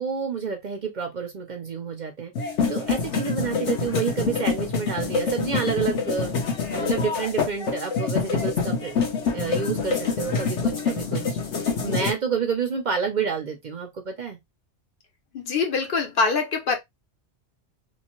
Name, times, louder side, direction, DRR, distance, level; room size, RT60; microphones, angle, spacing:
voice 1, 0.0-6.3 6.7-9.0 9.3-11.4 11.8-14.4, right 6 dB, 50° right, 0.7 m, -29 dB
sound 1, 2.4-12.1, left 5 dB, 85° left, 1.2 m, -26 dB
voice 2, 15.3-16.8, left 4 dB, 60° left, 0.8 m, -24 dB
3.0 x 2.1 x 2.9 m
omnidirectional pair, 1.2 m